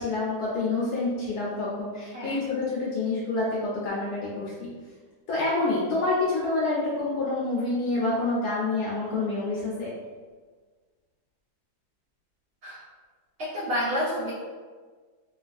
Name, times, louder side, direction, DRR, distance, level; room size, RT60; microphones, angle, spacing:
voice 1, 0.0-4.7 5.3-9.9, left 2 dB, 75° left, -6 dB, 1.0 m, -27 dB
voice 2, 13.4-14.3, equal, 70° right, -8 dB, 0.9 m, -29 dB
3.1 x 2.3 x 2.5 m, 1.4 s
omnidirectional pair, 2.1 m